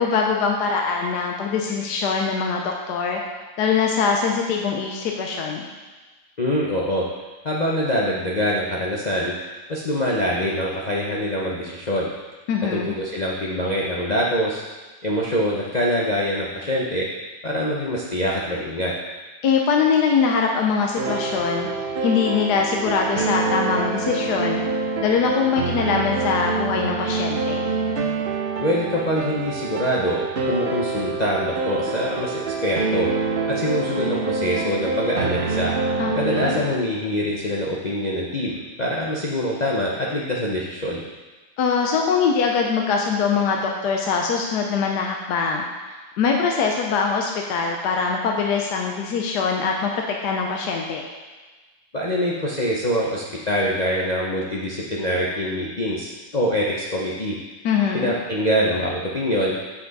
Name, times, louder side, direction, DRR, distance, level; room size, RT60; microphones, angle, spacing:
voice 1, 0.0-3.2 3.6-5.6 12.5-12.9 19.4-21.7 22.0-24.6 25.0-27.6 36.0-36.6 41.6-45.6 46.2-51.1 57.6-58.1, left 5 dB, 75° left, 1 dB, 1.3 m, -22 dB
voice 2, 6.4-7.0 7.4-9.3 9.7-12.1 12.7-14.6 15.0-17.1 17.4-18.9 28.6-33.1 33.5-35.8 36.2-41.0 51.9-57.4 57.9-59.6, equal, 45° left, -4 dB, 0.5 m, -24 dB
sound 1, 21.0-36.7, right 3 dB, 60° right, 0.6 m, -26 dB
7.8 x 5.7 x 4.0 m, 1.3 s
omnidirectional pair, 1.8 m